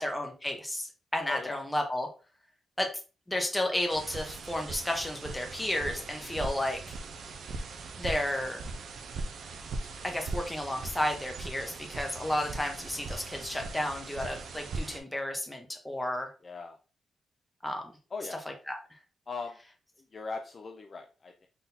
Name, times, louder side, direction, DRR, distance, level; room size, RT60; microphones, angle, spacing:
voice 1, 0.0-2.1 2.8-2.9 3.3-7.0 8.0-8.6 10.0-16.3 17.6-17.8 18.7-18.8, left 1 dB, 10° left, 3 dB, 0.8 m, -32 dB
voice 2, 1.3-1.6 16.4-16.8 18.1-18.4 19.3-19.6 20.1-21.5, left 4 dB, 30° left, 4 dB, 0.4 m, -39 dB
sound 1, 3.9-15.0, right 3 dB, 55° right, 0.5 m, -40 dB
3.9 x 3.8 x 2.7 m, 0.35 s
wide cardioid pair, 170°, 0 cm